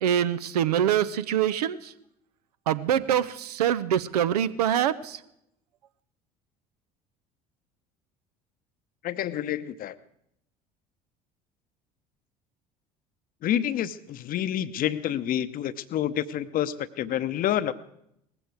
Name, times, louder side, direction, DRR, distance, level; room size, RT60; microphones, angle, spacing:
voice 1, 0.0-1.8 2.7-5.2, right 10 dB, 75° right, 14 dB, 0.7 m, -24 dB
voice 2, 9.0-10.0 13.4-17.7, left 11 dB, 45° left, 14 dB, 0.8 m, -28 dB
19.0 x 15.0 x 4.7 m, 0.78 s
figure-of-eight pair, 60°, 20 cm